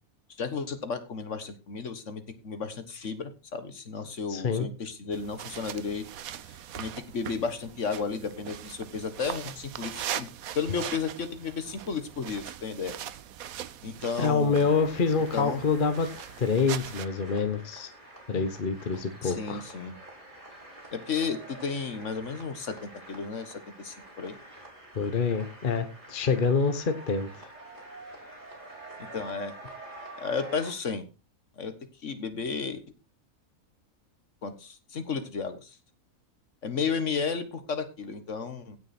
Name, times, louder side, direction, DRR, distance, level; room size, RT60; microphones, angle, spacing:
voice 1, 0.4-6.1 6.5-10.3 10.5-12.9 13.8-14.7 15.3-15.6 19.2-19.9 20.9-24.4 29.0-29.6 30.2-31.0 31.6-31.7 32.0-32.8 34.4-35.8 36.6-38.8, left 5 dB, 60° left, 10 dB, 1.7 m, -33 dB
voice 2, 4.3-4.7 14.2-16.1 16.4-17.9 18.3-19.6 24.9-27.5, left 5 dB, 40° left, 9 dB, 1.1 m, -26 dB
sound 1, 5.1-17.1, right 10 dB, 85° right, 1.2 m, -41 dB
sound 2, 14.5-30.7, right 1 dB, 35° right, 4.7 m, -47 dB
16.5 x 6.4 x 4.3 m, 0.30 s
omnidirectional pair, 1.4 m